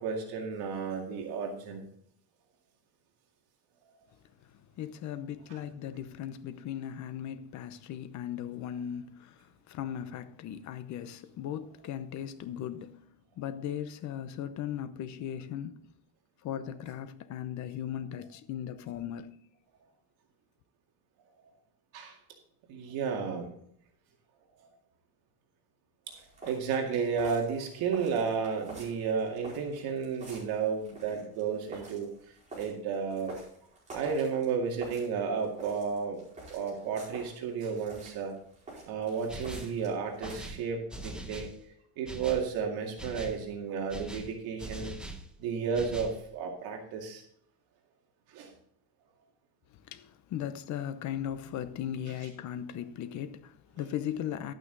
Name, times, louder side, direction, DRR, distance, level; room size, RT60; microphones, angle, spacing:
voice 1, 0.0-1.9 21.9-22.2 22.7-23.5 24.6-24.7 26.1-33.3 33.9-36.2 36.5-38.3 38.9-41.5 42.0-45.0 45.4-47.2 48.3-48.5, right 6 dB, 65° right, 2.2 m, -32 dB
voice 2, 4.5-13.0 13.4-15.9 16.4-19.4 49.8-54.5, left 10 dB, 45° left, 0.9 m, -38 dB
sound 1, 26.1-40.6, right 2 dB, 20° right, 5.1 m, -49 dB
sound 2, 39.3-39.8 40.2-41.6 42.1-42.5 43.0-43.4 43.9-45.3 45.7-46.2, right 1 dB, ahead, 0.8 m, -42 dB
12.0 x 8.9 x 4.0 m
cardioid pair, 160°, 40 cm